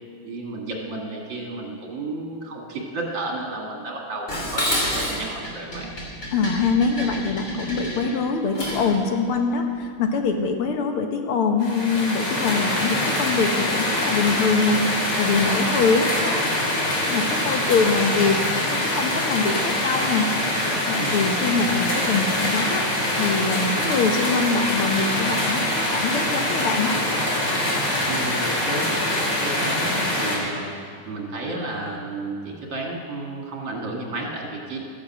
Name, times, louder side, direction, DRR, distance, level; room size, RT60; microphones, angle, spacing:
voice 1, 0.2-5.9 21.0-21.6 28.1-30.6 31.0-34.8, right 2 dB, 60° right, -1 dB, 2.9 m, -32 dB
Dishes pots and pans, 4.3-9.0, equal, 30° left, 3.2 m, -29 dB
voice 2, 6.3-14.8 15.2-16.8 17.1-20.3 20.9-22.9 23.2-27.0, left 4 dB, 85° left, 4 dB, 2.1 m, -24 dB
sound 1, 11.6-30.4, left 1 dB, 55° left, 3.5 m, -24 dB
13.5 x 11.0 x 7.6 m, 2.2 s
omnidirectional pair, 2.4 m